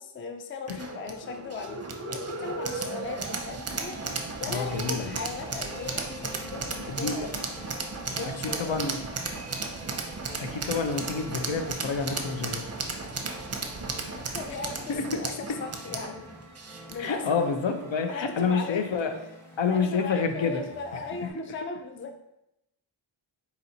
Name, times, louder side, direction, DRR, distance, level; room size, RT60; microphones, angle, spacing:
voice 1, 0.0-1.8 2.1-4.0 4.4-7.4 8.1-8.7 13.4-15.3 15.6-16.3 16.9-17.4 18.1-18.8 19.6-22.1, left 4 dB, 25° left, 5 dB, 0.4 m, -38 dB
sound 1, 0.7-17.2, right 3 dB, 30° right, 0.5 m, -35 dB
sound 2, 3.9-21.3, right 1 dB, 5° left, 0.8 m, -46 dB
voice 2, 4.5-5.2 6.9-7.3 8.2-9.0 10.4-12.7 14.9-15.1 17.0-19.1 19.6-20.6 21.2-21.3, left 5 dB, 65° left, 6 dB, 0.6 m, -28 dB
4.1 x 4.1 x 2.7 m, 0.85 s
wide cardioid pair, 95°, 48 cm